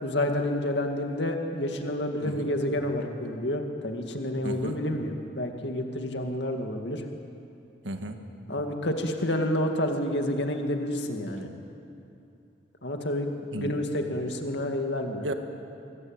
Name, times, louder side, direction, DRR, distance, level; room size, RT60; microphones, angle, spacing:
voice 1, 0.0-7.0 8.5-11.5 12.8-13.3 13.6-15.3, left 1 dB, 70° left, 4 dB, 2.1 m, -29 dB
voice 2, 4.4-4.8 7.8-8.2 13.5-13.8 15.2-15.3, right 1 dB, 85° right, 6 dB, 2.0 m, -34 dB
23.0 x 22.5 x 9.0 m, 2.7 s
head